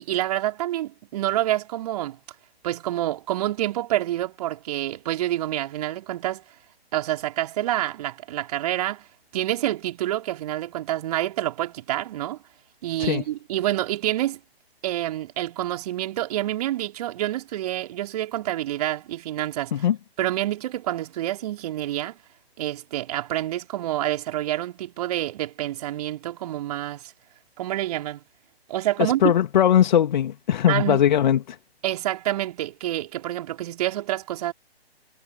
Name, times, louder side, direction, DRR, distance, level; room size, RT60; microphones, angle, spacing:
voice 1, 0.0-2.2 2.6-6.4 6.9-9.1 9.3-12.4 12.8-14.4 14.8-19.9 20.2-22.2 22.6-27.1 27.6-28.2 28.7-29.3 30.7-31.1 31.8-34.5, right 14 dB, 40° right, 4.3 m, -27 dB
voice 2, 29.0-31.6, left 10 dB, 45° left, 2.0 m, -20 dB
figure-of-eight pair, 130°, 32 cm